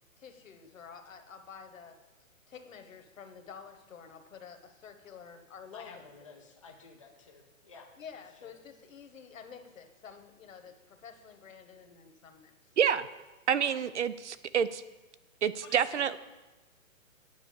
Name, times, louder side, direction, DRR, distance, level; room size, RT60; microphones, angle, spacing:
voice 1, 0.2-2.0 2.5-6.1 8.0-12.5 13.6-13.9, left 6 dB, 70° left, 7 dB, 1.3 m, -49 dB
voice 2, 5.7-7.9 8.4-8.5 15.6-16.2, left 5 dB, 25° left, 1 dB, 0.5 m, -51 dB
voice 3, 12.8-13.1 13.5-14.8 15.4-16.2, right 8 dB, 60° right, 16 dB, 0.5 m, -28 dB
9.4 x 4.7 x 7.6 m, 1.2 s
hypercardioid pair, 170°, 41 cm